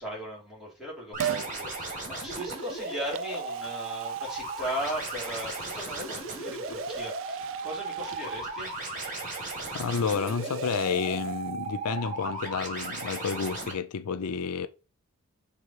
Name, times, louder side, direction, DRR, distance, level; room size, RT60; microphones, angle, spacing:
voice 1, 0.0-8.7, equal, ahead, 3.2 m, -38 dB
sound 1, 1.1-13.7, right 3 dB, 35° right, 2.1 m, -36 dB
Liquid, 1.2-1.5 2.1-11.8 12.1-12.2, right 10 dB, 60° right, 0.4 m, -41 dB
voice 2, 9.7-14.7, left 5 dB, 90° left, 0.5 m, -30 dB
6.5 x 3.5 x 4.6 m
head